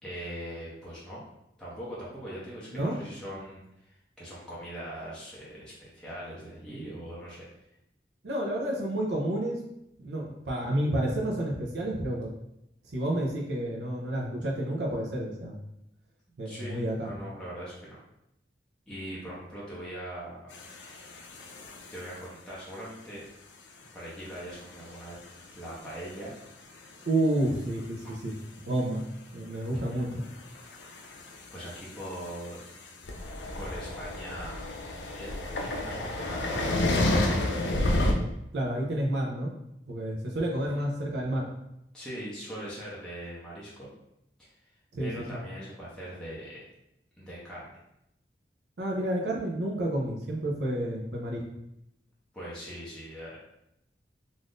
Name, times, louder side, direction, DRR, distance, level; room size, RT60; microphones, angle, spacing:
voice 1, 0.0-1.2 1.6-7.5 16.4-18.0 18.9-20.5 21.9-23.2 23.9-26.4 29.9-30.0 31.5-32.7 33.5-34.6 35.0-37.8 40.6-40.8 41.9-43.9 44.4-44.5 45.0-46.6 47.2-47.8 52.3-53.4, equal, 5° left, -8 dB, 0.6 m, -41 dB
voice 2, 8.2-9.6 10.0-12.3 12.9-15.6 16.4-17.1 27.1-28.0 28.2-28.3 28.6-29.0 29.3-30.2 38.5-39.5 39.9-41.5 44.9-45.1 48.8-51.4, right 1 dB, 70° right, -2 dB, 0.5 m, -30 dB
sound 1, 20.5-22.2 24.5-25.6 25.9-26.4 26.7-27.0 27.4-27.5 27.8-27.9 30.0-38.1, left 1 dB, 75° left, 0.4 m, -31 dB
2.5 x 2.4 x 3.5 m, 0.83 s
head